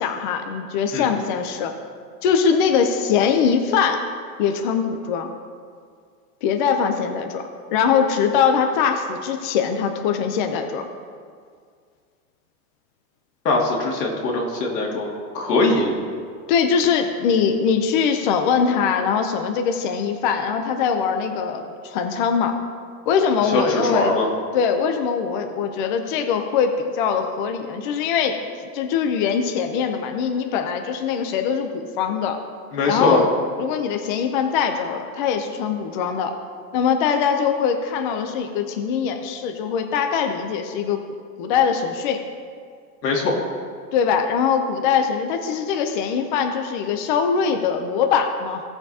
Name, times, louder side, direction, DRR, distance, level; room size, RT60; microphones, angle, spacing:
voice 1, 0.0-1.7 2.2-4.0 4.4-5.3 6.4-10.9 16.5-22.6 23.1-24.1 24.5-28.5 28.7-32.4 32.9-33.3 33.6-36.3 36.7-41.0 41.4-42.2 43.9-48.6, left 6 dB, 30° left, 5 dB, 0.5 m, -22 dB
voice 2, 13.4-15.1 15.3-15.9 23.4-24.3 32.7-33.2 43.0-43.4, left 2 dB, 90° left, -1 dB, 2.4 m, -21 dB
17.0 x 6.8 x 2.8 m, 2.1 s
supercardioid pair, 160°, 47 cm